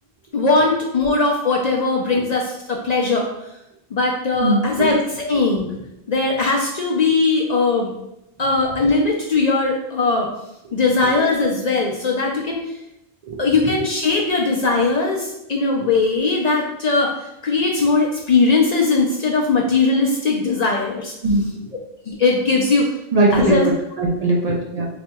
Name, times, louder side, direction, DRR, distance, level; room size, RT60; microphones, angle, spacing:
voice 1, 0.3-3.3 3.9-5.7 6.1-7.9 8.4-10.3 10.7-12.7 13.4-17.1 17.4-21.1 22.1-22.8 23.3-23.7, left 3 dB, 55° left, -1 dB, 0.5 m, -19 dB
voice 2, 4.4-4.9 13.2-13.7 21.2-21.7 23.1-24.9, right 1 dB, 55° right, -2 dB, 0.5 m, -20 dB
4.2 x 2.7 x 2.2 m, 0.86 s
omnidirectional pair, 1.0 m